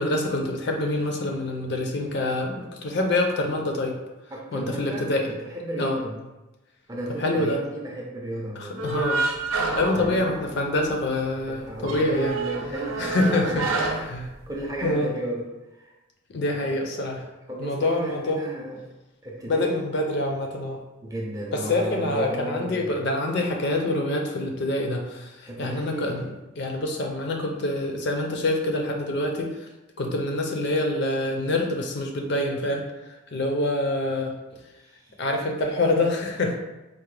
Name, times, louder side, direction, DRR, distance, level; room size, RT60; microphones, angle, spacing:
voice 1, 0.0-4.0 4.5-5.3 5.8-6.0 7.2-7.6 8.6-9.2 9.5-12.4 13.0-14.3 14.8-15.1 16.3-17.2 17.6-18.4 19.5-20.8 21.5-29.7 30.0-32.8 33.3-34.3 35.2-36.6, left 2 dB, 55° left, 2 dB, 0.5 m, -26 dB
voice 2, 4.3-6.2 6.9-8.9 9.9-10.3 11.4-14.1 14.5-15.9 16.5-16.8 17.5-18.8 19.2-19.8 21.0-23.1 25.5-26.2 34.8-35.2, right 1 dB, 15° right, -2 dB, 0.4 m, -34 dB
sound 1, 8.8-10.9 11.2-11.3 11.7-14.9, right 3 dB, 85° right, 0.6 m, -28 dB
4.5 x 2.1 x 3.2 m, 1.0 s
head